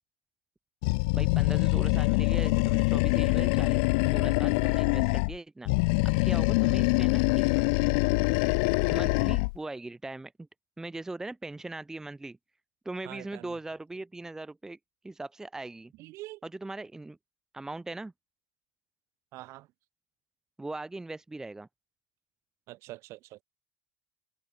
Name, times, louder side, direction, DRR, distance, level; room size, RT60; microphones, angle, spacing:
Animal, 0.8-5.3 5.6-9.6, left 30 dB, 75° left, 0.7 m, -25 dB
voice 1, 1.1-5.7 6.0-7.6 8.9-10.5 10.8-12.4 12.8-14.8 15.0-15.9 16.4-17.2 17.5-18.1 20.6-21.7, right 2 dB, 10° right, 1.2 m, -40 dB
voice 2, 13.0-13.5 16.0-16.4 19.3-19.7 22.7-23.4, right 18 dB, 60° right, 3.2 m, -44 dB
supercardioid pair, 105°, 5 cm